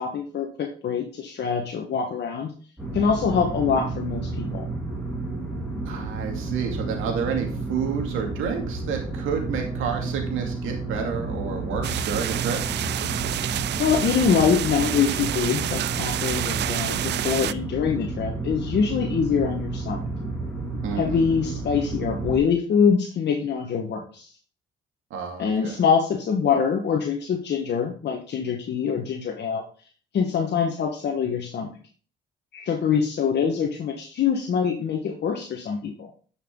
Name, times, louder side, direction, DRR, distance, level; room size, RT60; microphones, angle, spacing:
voice 1, 0.0-2.5 2.9-4.7 13.8-20.0 20.9-24.3 25.4-29.6 30.1-31.7 32.5-36.1, left 6 dB, 60° left, 2 dB, 1.3 m, -24 dB
sound 1, 2.8-22.4, right 3 dB, 5° left, 3.5 m, -31 dB
voice 2, 5.8-12.6 20.8-21.2 25.1-25.8, right 6 dB, 90° right, 2 dB, 2.4 m, -30 dB
sound 2, 11.8-17.5, right 13 dB, 60° right, 0.4 m, -29 dB
10.5 x 5.9 x 3.7 m, 0.42 s
cardioid pair, 90°, 20 cm